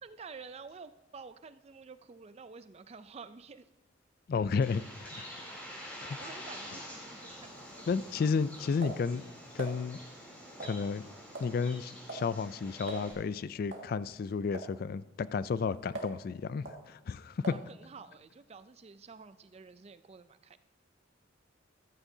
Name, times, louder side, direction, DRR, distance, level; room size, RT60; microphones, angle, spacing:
voice 1, 0.0-3.7 6.2-7.9 17.5-20.6, right 5 dB, 30° right, 0.4 m, -50 dB
voice 2, 4.3-5.3 6.0-6.1 7.9-9.3 9.5-10.0 10.6-11.0 11.4-17.4, left 5 dB, 50° left, 0.3 m, -32 dB
Bird, 4.6-13.1, equal, 10° left, 3.1 m, -47 dB
sound 1, 7.5-9.8 10.6-11.0 11.3-11.6 11.8-12.3 12.6-12.7 12.9-13.1 13.7-13.9 14.5-14.7 15.2-16.2 16.7-16.8 17.4-17.7, right 3 dB, 65° right, 1.9 m, -44 dB
14.0 x 13.5 x 2.7 m
head